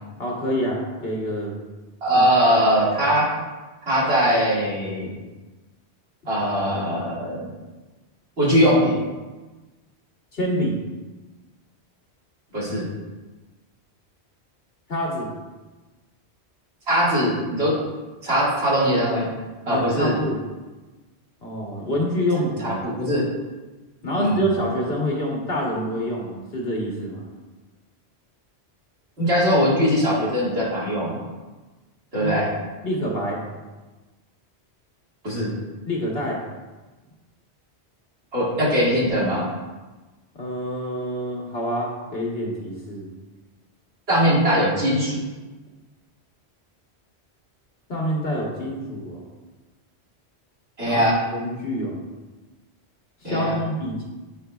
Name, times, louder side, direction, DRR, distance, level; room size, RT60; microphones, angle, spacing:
voice 1, 0.2-1.5 2.1-2.2 10.3-10.8 14.9-15.3 19.7-20.4 21.4-22.8 24.0-27.3 32.1-32.3 32.8-33.4 35.9-36.4 40.3-43.1 47.9-49.2 50.8-51.0 51.3-52.0 53.2-54.0, equal, 65° left, -2 dB, 1.4 m, -27 dB
voice 2, 2.0-3.3 3.9-5.1 6.3-7.5 8.4-9.0 12.5-12.9 16.9-17.8 18.2-19.3 19.7-20.2 22.6-23.3 24.1-24.5 29.2-31.2 32.1-32.5 35.2-35.5 38.3-39.5 44.1-45.2 50.8-51.2 53.2-53.5, equal, 70° right, -8 dB, 2.3 m, -21 dB
8.3 x 5.0 x 2.3 m, 1.2 s
omnidirectional pair, 1.1 m